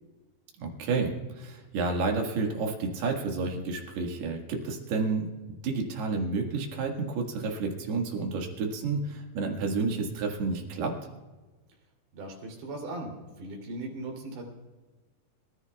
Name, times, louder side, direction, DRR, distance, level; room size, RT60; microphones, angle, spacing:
voice 1, 0.6-5.3 5.6-11.0, right 4 dB, 70° right, 2 dB, 3.8 m, -30 dB
voice 2, 12.1-14.4, right 2 dB, 85° right, 0 dB, 5.3 m, -38 dB
28.0 x 14.0 x 2.4 m, 1.2 s
omnidirectional pair, 4.9 m